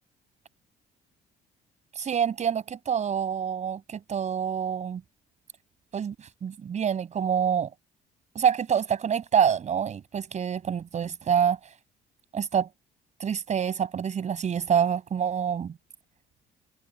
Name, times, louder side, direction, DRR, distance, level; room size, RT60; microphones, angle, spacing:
voice 1, 2.0-5.0 5.9-7.7 8.3-11.6 12.3-12.7 13.2-15.7, right 8 dB, 45° right, 5.8 m, -26 dB
cardioid pair, 110°, 17 cm